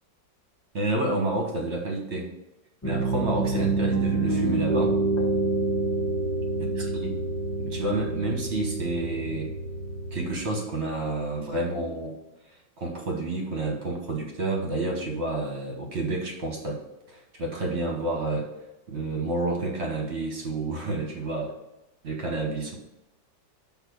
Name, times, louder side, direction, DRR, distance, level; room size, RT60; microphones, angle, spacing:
voice 1, 0.7-2.3 2.8-5.0 6.6-7.2 7.6-9.5 10.1-12.1 12.8-16.8 17.1-18.5 18.9-21.5 22.0-22.7, right 2 dB, 40° right, 1 dB, 1.3 m, -29 dB
Piano, 2.8-10.3, right 3 dB, 10° left, 1.0 m, -27 dB
6.6 x 3.5 x 6.2 m, 0.92 s
omnidirectional pair, 2.0 m